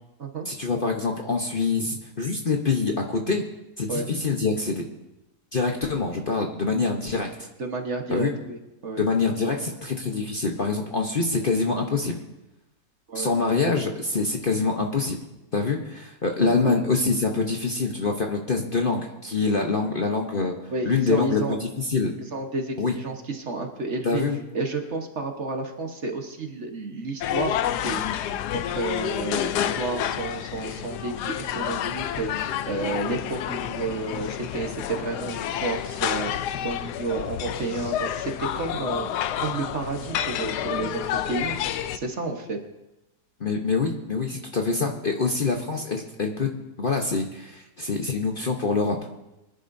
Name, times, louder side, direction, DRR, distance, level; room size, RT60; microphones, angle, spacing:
voice 1, 0.5-3.4 3.8-4.8 5.5-7.5 8.1-8.3 9.0-12.2 13.1-15.2 15.5-20.5 20.8-22.1 22.8-22.9 24.0-24.4 43.4-46.5 46.8-49.0, left 4 dB, 40° left, 2 dB, 0.9 m, -25 dB
voice 2, 7.6-9.0 9.5-9.6 13.1-13.3 16.4-16.8 20.7-21.6 22.3-24.2 24.5-41.6 41.9-42.6, right 3 dB, 50° right, 3 dB, 1.5 m, -31 dB
sound 1, 27.2-42.0, left 10 dB, 85° left, 1.2 m, -29 dB
24.5 x 10.5 x 2.7 m, 0.95 s
omnidirectional pair, 1.7 m